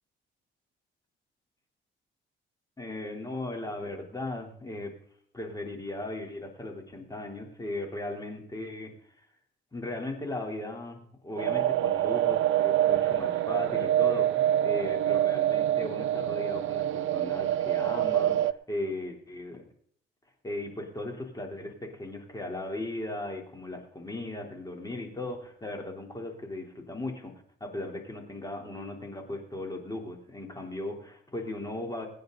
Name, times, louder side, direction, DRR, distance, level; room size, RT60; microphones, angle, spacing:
voice 1, 2.8-4.9 5.3-8.9 9.7-19.6 20.4-27.3 27.6-32.1, left 1 dB, 20° left, 2 dB, 3.6 m, -37 dB
sound 1, 11.4-18.5, right 12 dB, 80° right, 0.6 m, -26 dB
22.5 x 9.4 x 4.0 m, 0.62 s
cardioid pair, 90°, 20 cm